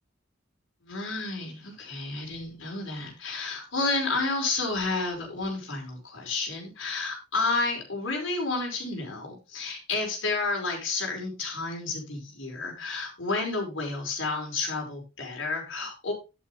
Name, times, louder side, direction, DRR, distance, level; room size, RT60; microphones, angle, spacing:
voice 1, 0.8-16.1, left 3 dB, 85° left, 0 dB, 5.1 m, -31 dB
11.5 x 8.6 x 3.4 m, 0.28 s
head